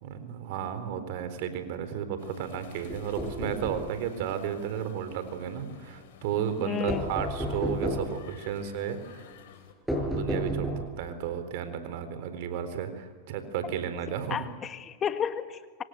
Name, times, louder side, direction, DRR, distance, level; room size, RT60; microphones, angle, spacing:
voice 1, 0.0-9.0 10.1-14.4, right 8 dB, 65° right, 10 dB, 4.1 m, -33 dB
sound 1, 2.2-9.7, left 9 dB, 70° left, 4.3 m, -50 dB
sound 2, 2.9-3.9 6.9-8.2 9.9-11.0, equal, ahead, 6.6 m, -31 dB
voice 2, 6.6-7.1 14.3-15.8, left 8 dB, 30° left, 9 dB, 1.9 m, -32 dB
26.0 x 25.5 x 8.2 m, 1.5 s
hypercardioid pair, 105°, 0 cm